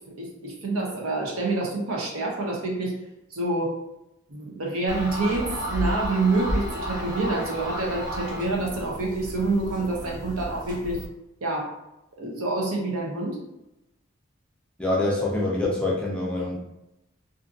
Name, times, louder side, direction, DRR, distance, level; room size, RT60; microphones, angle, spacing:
voice 1, 0.2-2.9 3.3-3.8 4.3-11.0 11.4-11.8 12.2-13.4, right 2 dB, 85° right, -1 dB, 0.7 m, -27 dB
sound 1, 4.9-11.1, equal, 40° right, 1.1 m, -32 dB
voice 2, 14.8-16.6, left 2 dB, 5° left, -4 dB, 0.4 m, -25 dB
2.5 x 2.5 x 2.5 m, 0.90 s
head